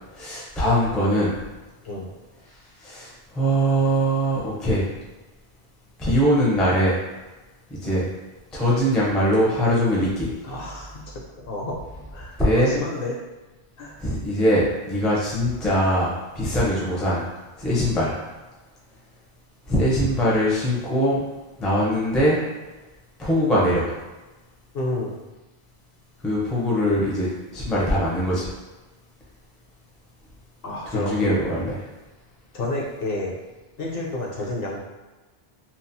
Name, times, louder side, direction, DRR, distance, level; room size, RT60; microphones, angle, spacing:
voice 1, 0.1-1.4 2.8-4.9 6.0-7.0 7.7-8.1 8.5-10.3 12.4-12.7 14.0-17.2 17.6-18.1 19.7-21.2 21.6-22.4 23.2-23.9 26.2-28.5 30.9-31.7, equal, ahead, -6 dB, 0.4 m, -22 dB
voice 2, 10.4-13.2 13.8-14.0 24.7-25.1 30.6-31.5 32.5-33.4 33.8-34.8, left 2 dB, 65° left, -2 dB, 0.8 m, -30 dB
2.9 x 2.0 x 2.6 m, 1.1 s
omnidirectional pair, 1.1 m